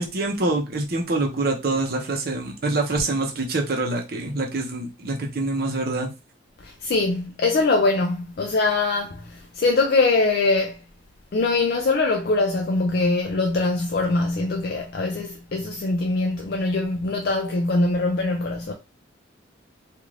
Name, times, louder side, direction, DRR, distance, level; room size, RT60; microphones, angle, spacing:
voice 1, 0.0-6.1, right 2 dB, 50° right, 0.7 m, -25 dB
voice 2, 6.6-10.8 11.3-18.7, left 3 dB, 50° left, 0.4 m, -23 dB
2.5 x 2.5 x 3.2 m
head